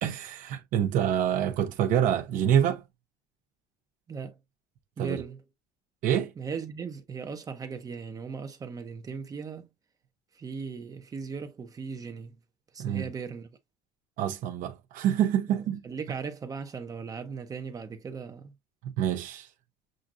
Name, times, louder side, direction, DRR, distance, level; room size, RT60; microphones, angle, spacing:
voice 1, 0.0-2.8 5.0-5.2 6.0-6.3 12.8-13.1 14.2-15.8 18.8-19.5, right 10 dB, 55° right, 0.8 m, -26 dB
voice 2, 5.0-5.4 6.4-9.7 10.3-12.4 12.7-13.5 15.5-18.5, right 5 dB, 20° right, 0.7 m, -38 dB
7.5 x 2.5 x 2.5 m
cardioid pair, 165°, 17 cm